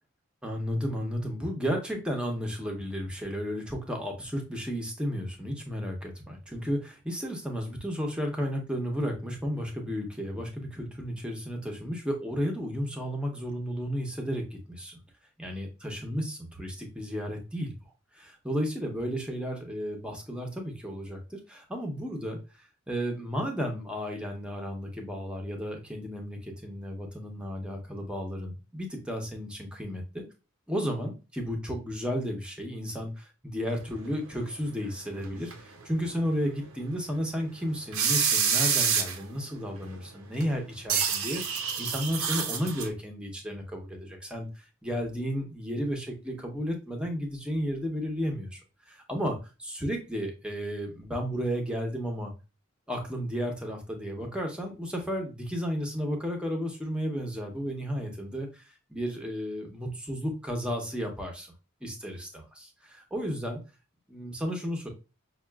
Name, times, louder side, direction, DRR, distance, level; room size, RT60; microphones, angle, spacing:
voice 1, 0.4-15.0 15.4-17.7 18.1-22.4 22.9-30.2 30.7-48.6 48.9-52.3 52.9-58.6 58.9-61.5 61.8-63.6 64.1-64.9, equal, 5° right, 2 dB, 0.8 m, -33 dB
sound 1, 34.1-35.2 35.5-35.6 36.0-36.1 36.6-36.7 37.4-37.5 37.7-37.8 37.9-39.3 39.8-40.0 40.4-40.5 40.9-42.9, right 6 dB, 70° right, 0.7 m, -27 dB
5.6 x 2.4 x 2.3 m, 0.30 s
head